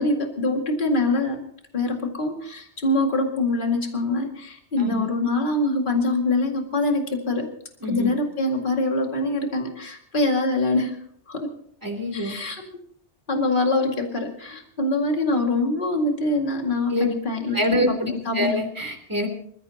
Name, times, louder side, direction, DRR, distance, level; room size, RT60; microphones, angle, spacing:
voice 1, 0.0-1.4 1.7-7.5 7.9-11.5 12.1-12.7 13.3-18.6, left 2 dB, 45° left, 2 dB, 2.3 m, -24 dB
voice 2, 7.8-8.1 11.8-12.4 16.9-17.0 17.5-19.3, equal, 15° right, 3 dB, 3.0 m, -25 dB
26.5 x 15.0 x 2.9 m, 0.66 s
omnidirectional pair, 1.2 m